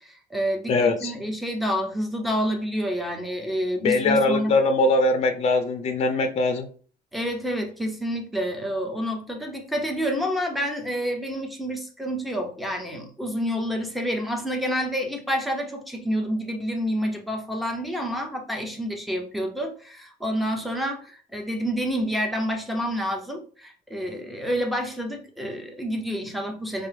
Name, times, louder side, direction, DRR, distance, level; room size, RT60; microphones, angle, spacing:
voice 1, 0.0-4.5 7.1-26.9, equal, ahead, 0.7 m, -28 dB
voice 2, 0.7-1.1 3.8-6.7, left 2 dB, 40° left, 0.6 m, -21 dB
4.2 x 2.0 x 3.3 m
cardioid pair, 110°, 17 cm